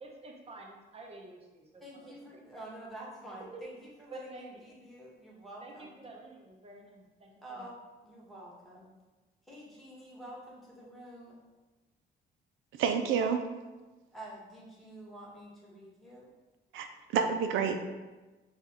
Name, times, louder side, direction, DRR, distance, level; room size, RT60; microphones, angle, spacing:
voice 1, 0.0-2.1 3.5-3.6 4.1-4.4 5.6-7.7, right 2 dB, 30° right, 0 dB, 0.8 m, -49 dB
voice 2, 1.8-6.0 7.4-7.8 8.0-8.9 9.4-11.4 14.1-16.3, right 1 dB, ahead, -5 dB, 1.3 m, -48 dB
voice 3, 12.8-13.4 16.7-16.9 17.1-17.9, right 6 dB, 85° right, 6 dB, 0.4 m, -28 dB
5.1 x 2.4 x 3.0 m, 1.2 s
cardioid pair, 90°, 20 cm